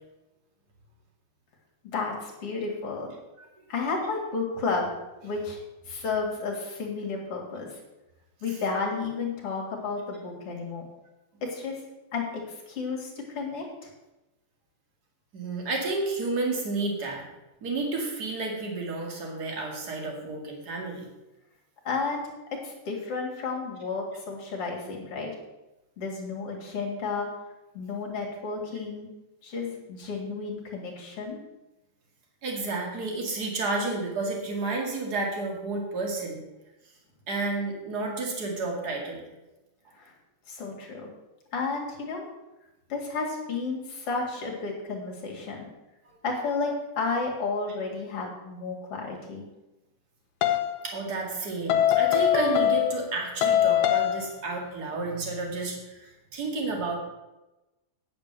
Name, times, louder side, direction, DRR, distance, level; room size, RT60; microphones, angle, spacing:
voice 1, 1.9-3.1 3.7-4.9 5.2-5.6 5.9-7.8 8.4-10.8 11.4-11.8 12.1-13.9 21.8-22.2 22.6-25.3 26.0-27.3 27.7-29.1 29.4-31.4 39.9-40.1 40.5-41.1 41.5-42.3 42.9-45.7 46.2-49.4, left 4 dB, 50° left, 0 dB, 2.6 m, -32 dB
voice 2, 15.3-17.2 17.6-21.1 32.4-36.4 37.3-39.2 50.8-56.9, right 3 dB, 35° right, 0 dB, 2.3 m, -31 dB
sound 1, 50.4-50.7 51.7-53.1 53.4-54.3, left 11 dB, 85° left, 2.4 m, -22 dB
9.5 x 7.5 x 6.7 m, 1.0 s
omnidirectional pair, 3.8 m